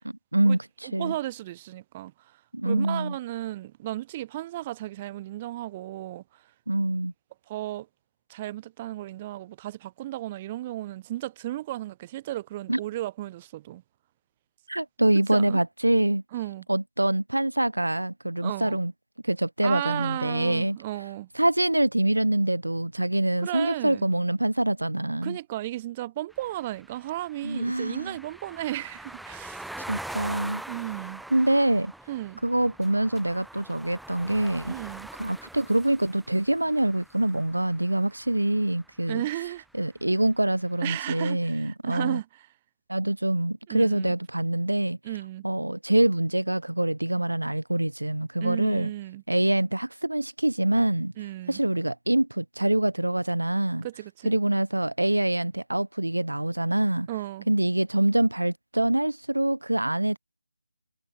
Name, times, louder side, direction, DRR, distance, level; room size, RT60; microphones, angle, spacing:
voice 1, 0.3-1.1 2.5-3.1 6.7-7.1 12.7-12.8 14.7-16.2 16.7-18.9 19.2-20.8 21.3-25.4 27.4-28.2 29.9-30.6 31.3-31.9 32.4-34.7 35.2-39.2 39.8-42.2 42.9-45.0 45.4-48.9 49.3-51.1 51.5-53.9 54.2-57.1 57.5-60.2, right 1 dB, 80° right, 1.1 m, -25 dB
voice 2, 0.8-2.4 2.6-6.4 7.5-7.9 8.3-13.8 15.3-15.6 16.3-16.6 18.4-18.8 19.6-21.3 23.4-24.1 25.2-29.8 30.7-31.2 32.1-32.4 34.7-35.1 39.1-39.6 40.8-42.5 43.7-44.1 45.0-45.4 48.4-49.2 51.2-51.6 53.8-54.3 57.1-57.5, right 15 dB, 20° right, 1.5 m, -34 dB
sound 1, 26.3-38.4, right 1 dB, ahead, 7.5 m, -43 dB
figure-of-eight pair, 150°, 0 cm